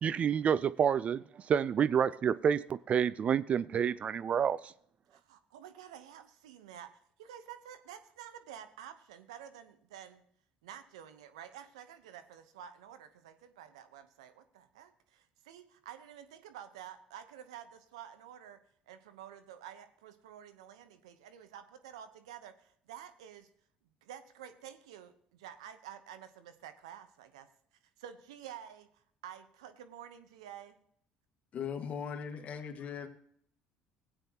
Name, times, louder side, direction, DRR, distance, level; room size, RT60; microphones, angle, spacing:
voice 1, 0.0-4.7, right 8 dB, 45° right, 0.4 m, -29 dB
voice 2, 5.1-10.3 10.6-18.6 18.9-23.5 24.0-27.5 28.0-30.8, right 10 dB, 90° right, 0.9 m, -50 dB
voice 3, 31.5-33.1, left 7 dB, 45° left, 1.7 m, -39 dB
16.0 x 9.1 x 2.9 m
hypercardioid pair, 70°, 3 cm